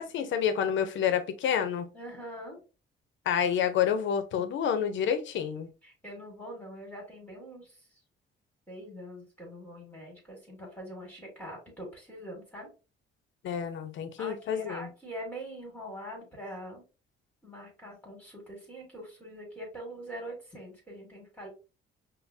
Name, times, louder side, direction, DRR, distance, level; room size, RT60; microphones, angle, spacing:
voice 1, 0.0-1.9 3.3-5.7 13.4-14.9, left 8 dB, 75° left, 0.7 m, -28 dB
voice 2, 1.9-2.6 5.8-7.7 8.7-12.7 14.2-16.8 17.4-21.5, equal, 10° left, 1.8 m, -43 dB
5.2 x 2.2 x 2.6 m
cardioid pair, 90°, 20 cm